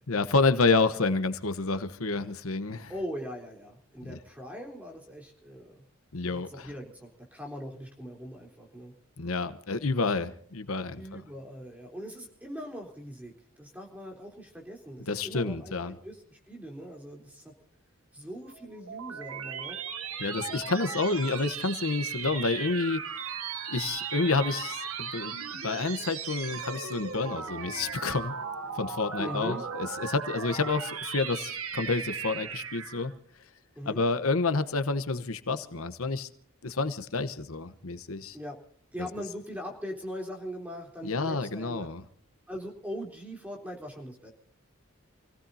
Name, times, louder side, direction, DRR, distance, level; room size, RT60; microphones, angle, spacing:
voice 1, 0.1-2.9 4.1-4.2 6.1-6.7 9.2-11.2 15.0-15.9 20.2-23.0 23.7-25.3 25.6-28.3 28.7-33.1 33.9-36.3 36.6-38.4 39.0-39.1 41.0-42.0, left 3 dB, 80° left, 1.1 m, -29 dB
voice 2, 2.9-5.8 6.3-8.9 11.0-17.5 18.1-19.8 29.2-29.6 33.8-34.0 38.3-38.6 38.9-41.9 42.5-44.3, equal, 5° right, 3.7 m, -41 dB
sound 1, 18.5-33.1, right 6 dB, 85° right, 1.7 m, -37 dB
28.5 x 16.5 x 2.8 m
head